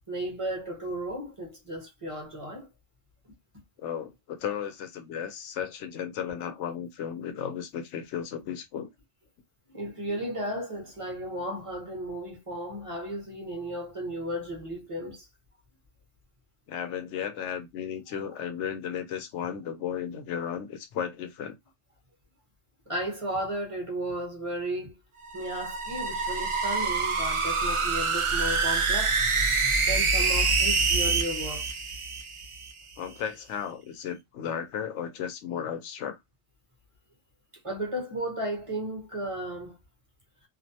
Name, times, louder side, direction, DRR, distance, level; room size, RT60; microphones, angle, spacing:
voice 1, 0.1-2.7 9.7-15.3 22.9-24.9 25.3-29.2 29.9-31.8 37.6-39.8, right 1 dB, 30° right, 0.9 m, -34 dB
voice 2, 3.8-8.9 16.7-21.6 33.0-36.2, left 8 dB, 90° left, 0.9 m, -34 dB
sound 1, 25.2-32.7, right 4 dB, 60° right, 0.3 m, -26 dB
2.5 x 2.1 x 2.7 m
omnidirectional pair, 1.2 m